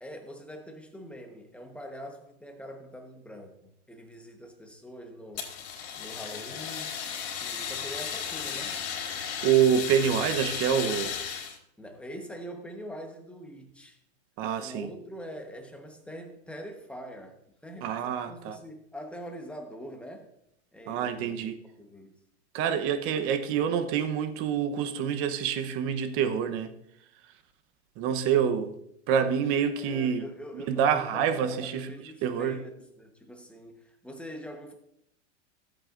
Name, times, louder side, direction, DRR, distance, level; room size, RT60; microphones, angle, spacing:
voice 1, 0.0-5.5 5.9-7.0 7.4-8.9 11.8-14.0 14.6-17.4 17.6-20.3 20.7-22.1 29.8-32.7 33.0-34.7, equal, 5° left, 1.2 m, -44 dB
Fire, 5.4-11.6, left 7 dB, 65° left, 3.8 m, -35 dB
voice 2, 9.4-11.2 14.4-14.9 17.8-18.6 20.9-21.6 22.5-26.7 28.0-28.7 29.1-30.2 30.5-31.9 32.2-32.6, right 8 dB, 40° right, 1.0 m, -26 dB
14.5 x 8.3 x 2.6 m
supercardioid pair, 140°, 34 cm